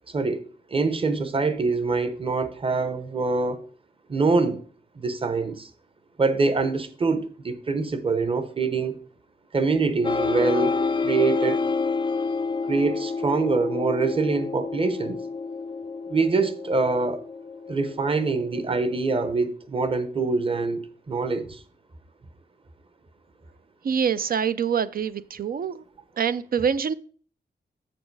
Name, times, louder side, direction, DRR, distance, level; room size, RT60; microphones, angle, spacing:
voice 1, 0.1-3.6 4.1-4.6 5.0-5.7 6.2-9.0 9.5-10.8 11.0-11.6 12.7-15.2 16.1-17.2 17.7-21.6, right 4 dB, 30° right, 0.9 m, -24 dB
sound 1, 10.0-19.3, left 4 dB, 25° left, 0.3 m, -29 dB
voice 2, 23.8-25.8 26.2-26.9, right 7 dB, 55° right, 0.4 m, -25 dB
7.7 x 7.1 x 4.6 m
wide cardioid pair, 165°, 19 cm